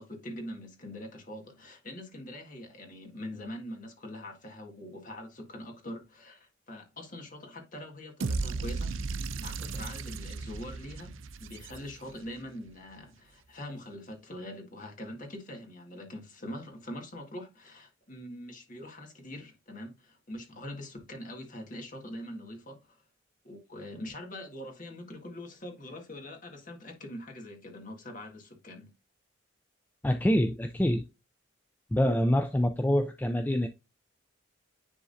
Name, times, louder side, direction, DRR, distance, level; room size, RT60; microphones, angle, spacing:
voice 1, 0.0-9.1 9.4-23.0 23.4-28.9, left 1 dB, 40° left, 1.7 m, -43 dB
sound 1, 8.2-12.3, right 4 dB, 80° right, 0.5 m, -35 dB
voice 2, 30.0-31.1 31.9-33.7, equal, 10° left, 0.3 m, -26 dB
10.0 x 3.7 x 2.6 m
head